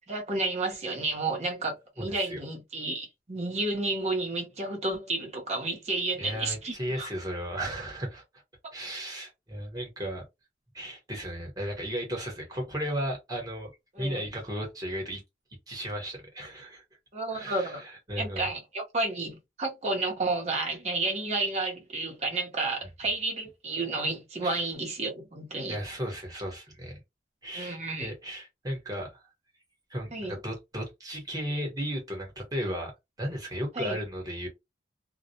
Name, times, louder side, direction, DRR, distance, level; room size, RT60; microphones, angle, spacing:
voice 1, 0.1-7.1 13.9-14.3 17.1-17.8 18.2-25.8 27.5-28.1 30.1-30.4 33.8-34.0, right 2 dB, 40° right, 0.8 m, -31 dB
voice 2, 2.0-2.4 6.2-8.2 8.7-10.2 10.7-13.7 14.0-15.2 15.7-16.8 17.3-18.5 24.4-24.6 25.7-27.0 27.4-29.2 29.9-32.9 33.2-34.5, equal, 20° right, 1.0 m, -35 dB
2.2 x 2.1 x 2.7 m
head